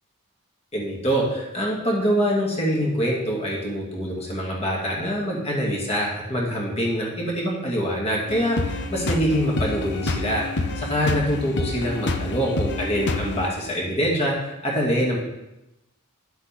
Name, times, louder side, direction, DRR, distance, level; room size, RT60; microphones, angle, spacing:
voice 1, 0.7-15.2, equal, 30° left, -3 dB, 2.4 m, -25 dB
sound 1, 8.3-13.5, left 2 dB, 55° left, 0.8 m, -28 dB
11.5 x 7.9 x 3.6 m, 0.92 s
head